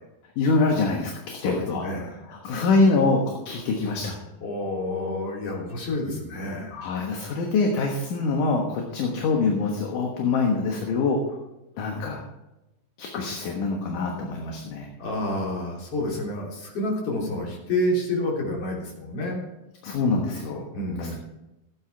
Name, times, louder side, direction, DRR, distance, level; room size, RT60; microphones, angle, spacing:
voice 1, 0.4-1.8 2.3-4.2 6.7-11.4 11.8-12.2 13.0-14.9 19.8-20.7 21.0-21.1, left 3 dB, 65° left, 1 dB, 2.7 m, -24 dB
voice 2, 1.4-2.2 4.4-6.9 15.0-19.4 20.7-21.2, left 1 dB, 40° left, -3 dB, 4.1 m, -29 dB
14.5 x 9.2 x 4.6 m, 0.96 s
omnidirectional pair, 4.3 m